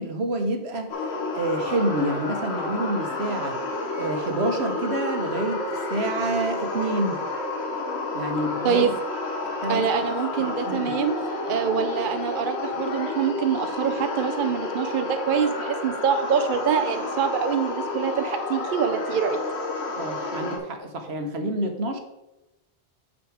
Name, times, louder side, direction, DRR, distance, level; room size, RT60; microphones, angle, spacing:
voice 1, 0.0-3.6 3.9-7.2 8.1-8.8 9.6-9.8 10.4-10.9 19.9-22.0, right 1 dB, 80° right, 5 dB, 1.4 m, -28 dB
sound 1, 0.9-20.6, left 2 dB, 90° left, 1.5 m, -30 dB
voice 2, 8.6-9.0 9.7-19.4, right 7 dB, 60° right, 7 dB, 0.8 m, -25 dB
6.7 x 6.2 x 4.9 m, 0.96 s
omnidirectional pair, 1.1 m